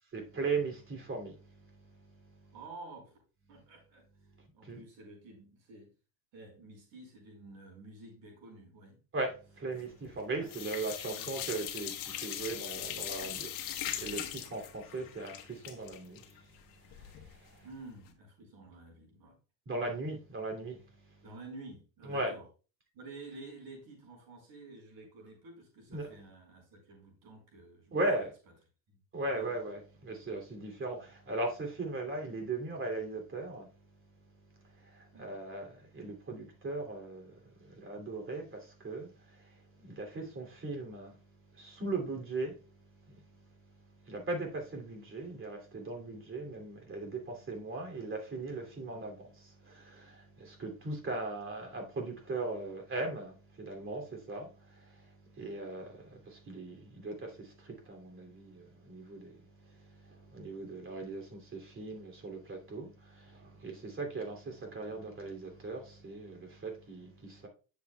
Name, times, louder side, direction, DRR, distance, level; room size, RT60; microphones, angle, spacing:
voice 1, 0.1-2.5 4.4-4.8 9.1-17.6 19.7-21.1 22.0-22.3 25.9-26.1 27.9-28.3 29.1-33.8 34.5-41.2 41.5-67.5, right 2 dB, 35° right, 2.8 m, -39 dB
voice 2, 2.5-3.2 3.5-4.0 4.5-5.9 6.3-9.0 10.3-10.5 11.0-11.6 17.6-19.3 21.2-22.5 22.9-28.0 28.9-29.0 29.4-29.5 35.1-35.4 47.8-48.1, right 2 dB, 75° right, 4.8 m, -51 dB
sound 1, 9.8-10.2 10.5-17.3 17.7-17.8 18.1-18.2, left 11 dB, 70° left, 1.2 m, -40 dB
10.0 x 7.1 x 2.3 m
cardioid pair, 110°, 36 cm